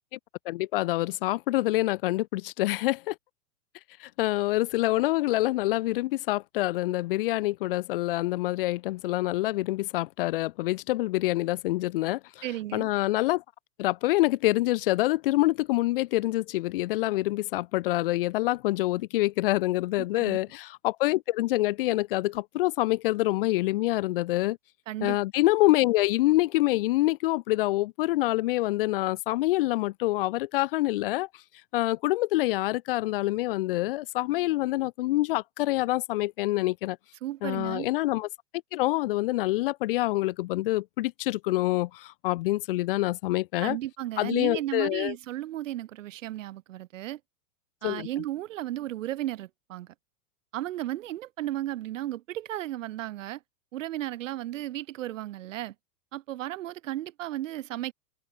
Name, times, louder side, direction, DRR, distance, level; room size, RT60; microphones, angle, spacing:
voice 1, 0.4-3.1 4.0-12.4 12.7-13.4 13.8-24.6 25.0-31.3 31.7-37.0 37.4-38.3 38.7-43.8 44.2-45.1 47.8-48.1, left 18 dB, 35° left, 1.2 m, -26 dB
voice 2, 12.4-12.9 20.0-20.4 24.9-25.2 37.2-37.9 43.6-47.2 47.8-49.9 50.5-53.4 53.7-55.7 56.1-57.9, right 14 dB, 50° right, 1.2 m, -34 dB
open air
supercardioid pair, 170°, 48 cm